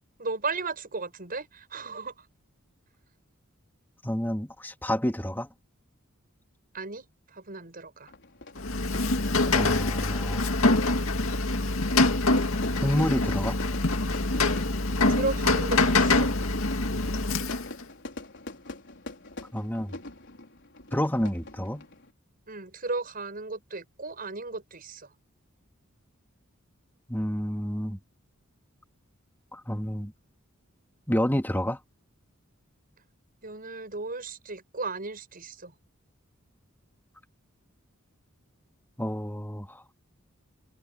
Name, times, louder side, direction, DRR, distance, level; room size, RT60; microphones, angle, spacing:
voice 1, 0.2-2.3 6.7-8.1 15.1-16.3 22.5-25.1 33.4-35.7, right 3 dB, 45° right, 6.9 m, -35 dB
voice 2, 4.0-5.5 9.5-10.5 12.8-13.6 19.5-19.9 20.9-21.8 27.1-28.0 29.5-30.1 31.1-31.8 39.0-39.8, equal, 10° left, 2.3 m, -29 dB
Fire / Fireworks, 8.1-22.1, left 2 dB, 60° left, 4.8 m, -43 dB
Rain, 8.6-17.8, left 2 dB, 80° left, 2.2 m, -25 dB
head